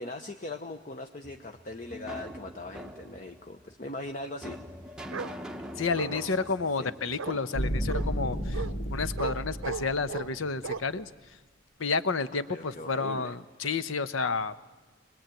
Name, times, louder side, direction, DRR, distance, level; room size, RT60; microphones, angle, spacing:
voice 1, 0.0-4.6 4.9-5.1 6.1-6.4 6.7-6.9 12.3-13.4, left 2 dB, 40° left, 6 dB, 0.8 m, -40 dB
sound 1, 1.2-9.4, equal, 5° right, 0.8 m, -45 dB
Bark, 5.1-5.3 5.9-6.5 7.2-7.4 7.9-8.1 8.5-8.7 9.2-9.3 9.6-10.3 10.6-10.8, right 5 dB, 85° right, 0.7 m, -36 dB
voice 2, 5.8-8.6 8.9-11.1 11.8-14.5, left 4 dB, 80° left, 13 dB, 0.9 m, -30 dB
sound 2, 7.5-10.8, equal, 60° left, 2.5 m, -32 dB
24.0 x 20.0 x 9.1 m, 1.3 s
head